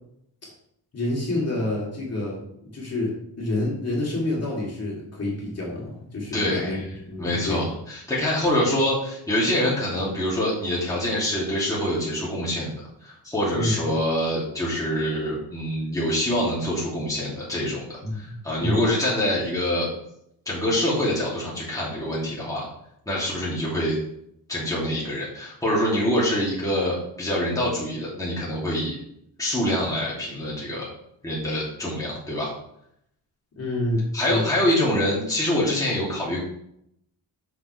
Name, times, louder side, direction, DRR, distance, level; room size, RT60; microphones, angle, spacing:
voice 1, 0.9-6.8 7.0-7.7 13.5-13.7 18.0-18.8 33.5-34.5, left 1 dB, 35° left, -4 dB, 2.9 m, -28 dB
voice 2, 6.3-6.8 7.2-12.7 13.0-19.9 20.5-22.7 23.1-24.0 24.5-29.0 29.4-30.9 31.2-32.5 34.1-36.4, left 1 dB, 10° left, -6 dB, 2.6 m, -25 dB
7.1 x 6.7 x 3.3 m, 0.74 s
cardioid pair, 110°, 42 cm